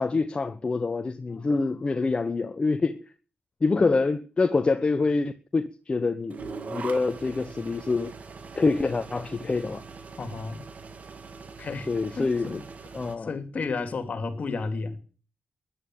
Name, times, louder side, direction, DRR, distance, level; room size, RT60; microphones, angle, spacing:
voice 1, 0.0-3.0 3.6-6.4 6.7-8.1 8.6-9.8 11.9-12.6 12.9-13.3, left 3 dB, 35° left, 1.0 m, -26 dB
sound 1, 6.3-13.2, right 4 dB, 55° right, 2.1 m, -42 dB
voice 2, 10.2-10.6 11.6-12.6 13.2-15.0, left 4 dB, 55° left, 2.7 m, -33 dB
14.0 x 10.5 x 9.3 m
cardioid pair, 70°, 3 cm